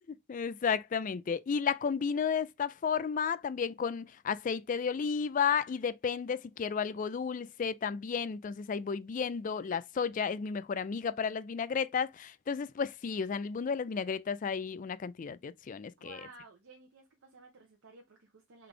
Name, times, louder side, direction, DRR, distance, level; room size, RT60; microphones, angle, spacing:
voice 1, 0.3-16.2, left 6 dB, 40° left, 0.3 m, -33 dB
voice 2, 16.0-18.7, right 3 dB, 75° right, 0.9 m, -54 dB
3.9 x 3.3 x 3.2 m
head